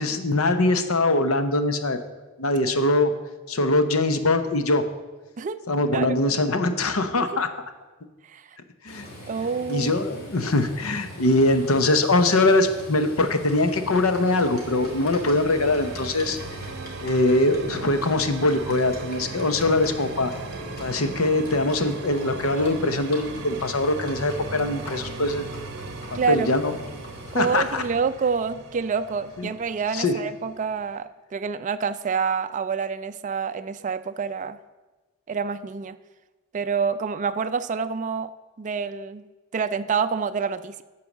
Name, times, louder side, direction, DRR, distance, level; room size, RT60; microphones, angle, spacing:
voice 1, 0.0-2.0 2.4-3.1 3.5-4.8 5.7-7.5 8.8-9.1 9.7-16.4 17.0-20.3 20.8-25.5 26.3-26.7 27.3-27.8 29.4-29.5 29.9-30.1, left 2 dB, 75° left, 9 dB, 0.9 m, -22 dB
voice 2, 8.2-8.6 9.3-10.0 26.1-26.5 27.3-34.6 35.3-36.0 36.5-38.3 38.6-39.3 39.5-40.8, right 6 dB, 35° right, 10 dB, 0.3 m, -27 dB
Livestock farm animals working animals, 8.9-27.9, left 1 dB, 45° left, 2.4 m, -41 dB
sound 1, 13.2-31.0, right 3 dB, 55° right, 0.8 m, -39 dB
12.5 x 4.7 x 7.3 m, 1.2 s
head